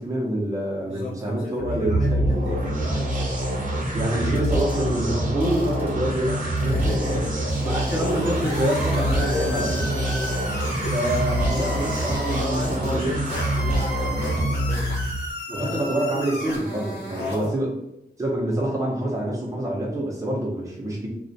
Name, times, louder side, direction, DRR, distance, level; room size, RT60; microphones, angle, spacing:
voice 1, 0.0-2.4 3.9-7.2 7.6-10.2 10.9-13.1 15.5-17.7 18.2-21.1, right 1 dB, 20° right, -3 dB, 0.7 m, -26 dB
voice 2, 0.9-3.4 6.6-8.0 8.9-11.2 12.2-15.9 17.1-17.6, left 2 dB, 55° left, -6 dB, 0.6 m, -35 dB
sound 1, 1.5-15.3, right 1 dB, 50° right, 0.8 m, -25 dB
sound 2, 4.3-4.7 5.4-5.9 6.6-7.2 7.5-8.0 8.5-9.4 9.8-9.9 10.1-10.3 10.6-10.8 11.0-11.2 11.5-12.1 12.5-13.0 13.3-13.4 13.8-13.9 14.2-14.3 14.7-14.8, left 1 dB, 15° left, 1.0 m, -45 dB
sound 3, 7.9-12.5 13.3-17.5, equal, 85° left, 0.9 m, -34 dB
2.3 x 2.1 x 2.6 m, 0.81 s
wide cardioid pair, 90°, 17 cm